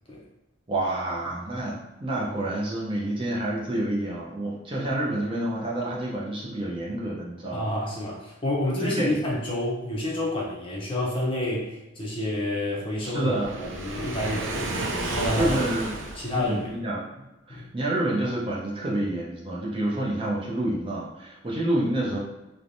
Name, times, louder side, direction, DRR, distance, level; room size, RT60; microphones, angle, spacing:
voice 1, 0.7-7.7 8.8-9.1 13.1-13.6 15.3-15.9 16.3-22.2, right 1 dB, 25° right, -4 dB, 0.5 m, -28 dB
voice 2, 7.5-13.3 13.6-15.6 15.9-16.8 17.5-17.7, left 1 dB, 25° left, -4 dB, 0.6 m, -29 dB
Waves surf, 13.2-16.7, right 2 dB, 75° right, 0.5 m, -31 dB
3.1 x 2.1 x 2.6 m, 1.0 s
head